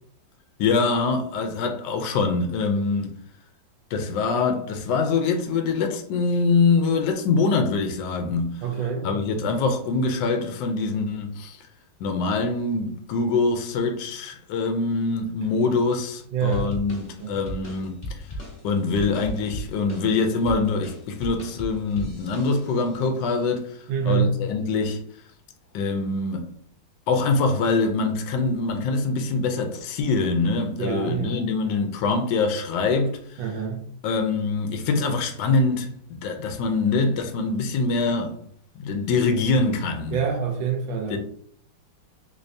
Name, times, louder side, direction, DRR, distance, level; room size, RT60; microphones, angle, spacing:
voice 1, 0.6-3.1 3.9-8.6 9.0-11.6 12.0-18.2 18.6-25.0 25.7-26.5 27.1-33.4 34.0-38.3 38.8-40.2 41.1-41.2, left 4 dB, 75° left, 1.2 m, -24 dB
voice 2, 8.6-9.4 16.3-16.7 17.2-17.4 23.9-24.3 30.8-31.8 33.4-33.8 40.1-41.2, right 7 dB, 90° right, 1.4 m, -26 dB
sound 1, 16.5-22.9, left 1 dB, 35° left, 0.8 m, -37 dB
3.4 x 3.2 x 2.6 m
omnidirectional pair, 2.1 m